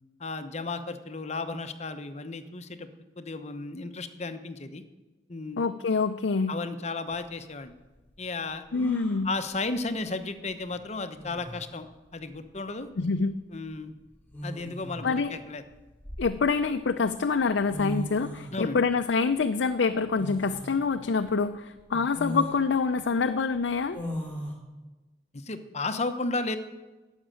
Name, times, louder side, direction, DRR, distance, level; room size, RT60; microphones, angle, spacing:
voice 1, 0.2-2.9 3.2-4.8 5.3-5.7 6.5-7.7 8.2-8.6 9.2-11.9 12.1-12.9 13.5-13.9 14.4-15.6 18.5-18.8 21.9-22.0 25.4-26.6, left 3 dB, 40° left, 9 dB, 0.9 m, -34 dB
voice 2, 5.6-6.5 8.7-9.3 13.0-13.4 15.0-15.3 16.2-24.0, left 4 dB, 80° left, 7 dB, 0.5 m, -26 dB
sound 1, 8.7-9.2 10.7-10.8 11.2-11.7 13.0-13.2 14.3-15.1 15.7-16.7 17.4-17.5 17.7-18.6 20.2-20.8 21.3-21.4 22.1-22.6 23.9-24.5, equal, 10° left, 2.6 m, -36 dB
12.0 x 7.4 x 9.0 m, 1.2 s
head